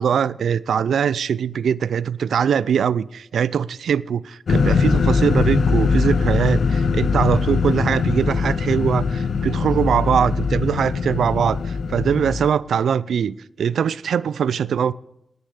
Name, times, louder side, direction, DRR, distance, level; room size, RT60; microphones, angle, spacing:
voice 1, 0.0-14.9, right 8 dB, 80° right, 20 dB, 0.4 m, -22 dB
sound 1, 4.5-12.5, left 5 dB, 70° left, 0.7 m, -21 dB
9.6 x 9.5 x 9.9 m, 0.81 s
supercardioid pair, 45°, 0 cm